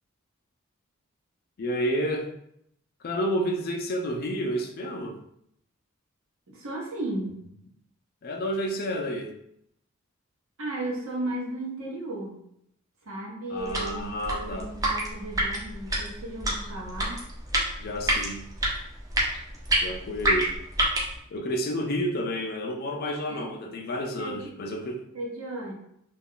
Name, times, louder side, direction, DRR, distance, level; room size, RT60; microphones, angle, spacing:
voice 1, 1.6-2.3 3.0-5.2 8.2-9.3 13.5-14.7 17.8-18.4 19.8-20.5 21.3-25.1, equal, 45° left, 4 dB, 0.4 m, -30 dB
voice 2, 6.5-7.4 10.6-12.4 13.0-17.2 23.3-23.5 24.2-24.4 25.1-25.7, right 1 dB, 75° right, -2 dB, 0.9 m, -35 dB
sound 1, 13.6-21.2, right 1 dB, 15° right, 0.5 m, -28 dB
2.4 x 2.2 x 3.6 m, 0.74 s
head